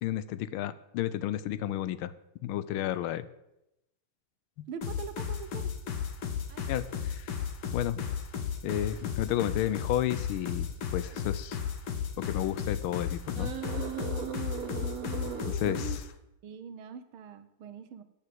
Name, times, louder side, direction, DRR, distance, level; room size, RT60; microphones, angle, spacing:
voice 1, 0.0-2.1 2.4-3.2 6.7-7.3 7.7-8.1 8.6-11.6 12.2-13.5 15.5-16.0, left 12 dB, 85° left, 16 dB, 1.5 m, -32 dB
voice 2, 4.7-5.7 16.4-18.0, right 7 dB, 80° right, 10 dB, 1.7 m, -43 dB
sound 1, 4.8-16.1, left 7 dB, 60° left, 1.6 m, -34 dB
sound 2, 6.5-6.7 7.4-7.5 8.9-9.1 10.2-10.5 11.1-11.3 13.3-16.0, right 7 dB, 55° right, 1.1 m, -38 dB
8.9 x 6.8 x 7.7 m, 0.87 s
omnidirectional pair, 2.3 m